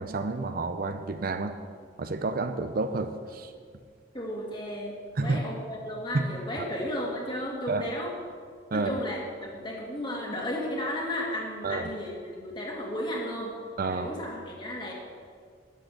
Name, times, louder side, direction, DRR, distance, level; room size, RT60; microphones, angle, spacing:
voice 1, 0.0-1.6 2.0-3.5 5.2-5.4 6.1-6.2 7.7-7.8 8.7-8.9 11.6-11.9 13.8-14.1, right 3 dB, 50° right, 9 dB, 0.6 m, -29 dB
voice 2, 4.1-5.0 5.2-8.1 8.7-13.5 13.9-14.9, left 1 dB, 25° left, -2 dB, 2.4 m, -34 dB
11.5 x 8.7 x 6.6 m, 2.1 s
head